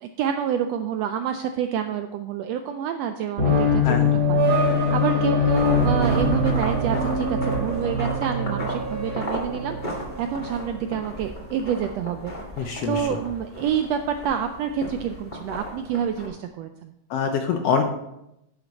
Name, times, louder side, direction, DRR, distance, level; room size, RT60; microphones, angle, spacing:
voice 1, 0.0-4.6 4.9-16.9, right 8 dB, 85° right, 7 dB, 1.5 m, -28 dB
sound 1, 3.4-10.7, left 2 dB, 50° right, 4.6 m, -23 dB
sound 2, 5.5-16.3, left 1 dB, 20° left, 1.7 m, -35 dB
voice 2, 12.6-13.1 17.1-17.8, left 6 dB, 75° left, 5 dB, 1.5 m, -24 dB
10.5 x 7.1 x 4.1 m, 0.84 s
omnidirectional pair, 3.4 m